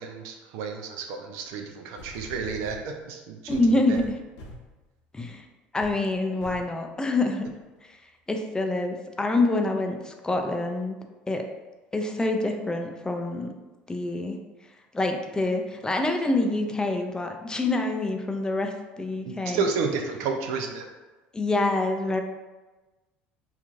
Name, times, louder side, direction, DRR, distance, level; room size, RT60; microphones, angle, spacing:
voice 1, 0.0-4.0 19.2-20.9, right 5 dB, 65° right, 4 dB, 0.4 m, -31 dB
sound 1, 1.5-1.6 2.0-2.9 3.5-4.7 5.2-5.4 5.8-6.0 6.4-6.7 7.4-7.5, left 1 dB, 65° left, 0.8 m, -44 dB
voice 2, 3.5-4.0 5.1-5.5 5.7-7.4 7.8-8.0 8.3-11.0 11.3-11.4 11.9-13.6 13.9-14.4 14.9-19.7 21.3-22.2, left 2 dB, 15° left, 3 dB, 0.4 m, -26 dB
2.9 x 2.4 x 2.4 m, 1.2 s
hypercardioid pair, 70°, 5 cm